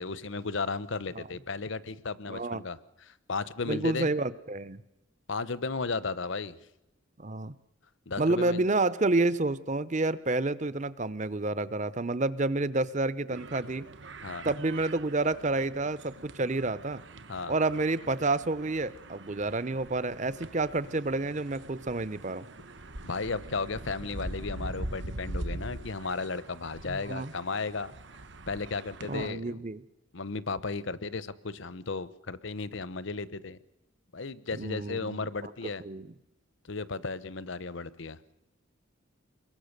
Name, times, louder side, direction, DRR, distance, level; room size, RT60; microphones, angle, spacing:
voice 1, 0.0-2.8 3.1-4.1 5.3-6.5 8.1-8.6 14.2-14.5 17.3-17.5 23.0-27.9 28.5-29.6 30.1-33.6 34.1-35.8 36.7-38.2, left 4 dB, 65° left, 17 dB, 0.9 m, -34 dB
voice 2, 2.3-2.6 3.7-4.8 7.2-7.5 8.2-13.9 14.4-17.0 17.5-22.5 26.9-27.3 29.1-29.8 34.6-35.5 35.8-36.1, right 2 dB, 35° right, 17 dB, 0.7 m, -29 dB
sound 1, 13.3-29.3, right 1 dB, 60° right, 1.1 m, -43 dB
25.5 x 22.0 x 6.7 m, 0.92 s
head